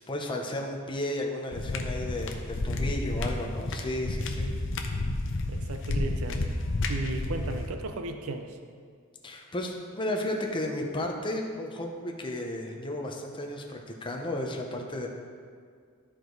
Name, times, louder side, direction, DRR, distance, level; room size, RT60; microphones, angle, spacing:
voice 1, 0.1-4.5 9.2-15.1, left 1 dB, 25° left, 1 dB, 0.8 m, -33 dB
sound 1, 1.5-7.7, left 2 dB, 60° left, 0.7 m, -31 dB
voice 2, 5.5-6.4 6.9-8.6, right 2 dB, 75° right, 6 dB, 0.6 m, -35 dB
13.0 x 4.9 x 4.0 m, 2.1 s
head